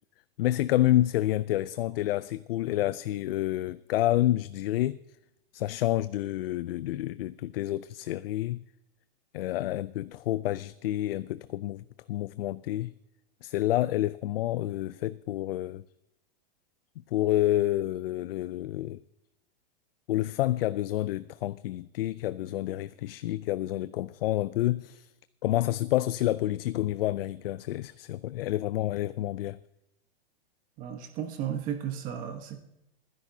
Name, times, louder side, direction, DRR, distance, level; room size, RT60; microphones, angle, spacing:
voice 1, 0.4-5.0 5.5-8.6 9.3-12.9 13.4-15.8 17.1-19.0 20.1-25.1 25.4-29.6, left 14 dB, 70° left, 0.5 m, -29 dB
voice 2, 30.8-32.6, right 9 dB, 30° right, 1.1 m, -34 dB
26.5 x 10.5 x 2.7 m
supercardioid pair, 160°, 30 cm